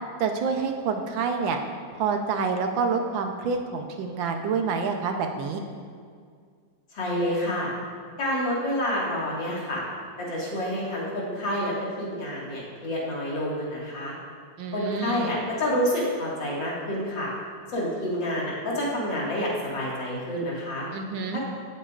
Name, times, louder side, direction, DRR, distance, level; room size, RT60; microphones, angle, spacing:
voice 1, 0.2-1.6 1.9-5.6 14.6-15.3 20.9-21.4, right 5 dB, 90° right, 4 dB, 1.6 m, -27 dB
voice 2, 6.9-7.7 8.2-9.8 10.2-14.1 14.7-17.3 17.7-20.9 21.3-21.4, equal, 75° left, -5 dB, 2.8 m, -28 dB
16.0 x 8.0 x 2.5 m, 2.1 s
omnidirectional pair, 2.0 m